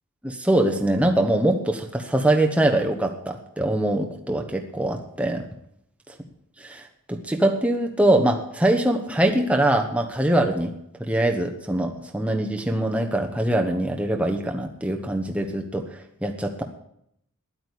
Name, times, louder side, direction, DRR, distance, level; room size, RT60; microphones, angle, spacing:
voice 1, 0.2-5.5 6.6-10.7 11.0-16.6, right 1 dB, 5° right, 2 dB, 1.1 m, -23 dB
10.0 x 8.9 x 9.8 m, 0.73 s
head